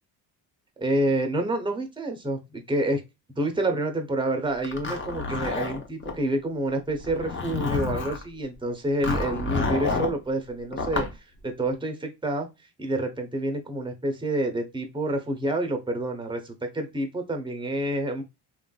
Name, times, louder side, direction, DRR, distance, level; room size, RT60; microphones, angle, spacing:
voice 1, 0.8-3.0 3.4-11.1 11.4-12.5 12.8-18.2, right 1 dB, 10° right, 4 dB, 0.7 m, -28 dB
Zipper (clothing), 4.6-6.2 7.0-8.2 9.0-10.1 10.7-11.1, left 3 dB, 25° left, 0.8 m, -29 dB
3.2 x 2.5 x 2.3 m, 0.23 s
cardioid pair, 85°, 43 cm